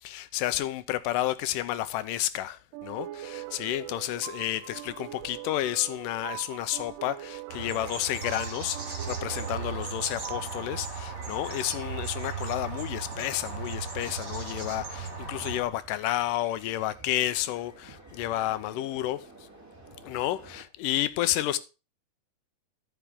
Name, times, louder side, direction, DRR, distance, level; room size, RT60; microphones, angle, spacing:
voice 1, 0.0-19.2 20.0-21.6, left 14 dB, 90° left, 2.3 m, -31 dB
sound 1, 2.7-12.0, right 15 dB, 90° right, 2.3 m, -43 dB
sound 2, 7.5-15.6, right 5 dB, 35° right, 3.0 m, -36 dB
sound 3, 13.1-20.6, right 2 dB, 5° right, 1.9 m, -51 dB
13.5 x 5.9 x 3.6 m
omnidirectional pair, 3.8 m